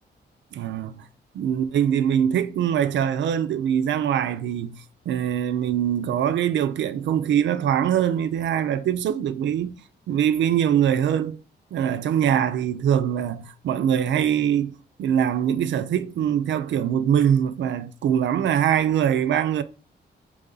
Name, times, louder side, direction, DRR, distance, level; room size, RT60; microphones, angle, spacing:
voice 1, 0.5-1.0 1.3-4.8 5.1-9.8 10.1-11.4 11.7-19.6, right 9 dB, 80° right, 0.4 m, -23 dB
3.9 x 3.0 x 3.8 m
cardioid pair, 105°, 19 cm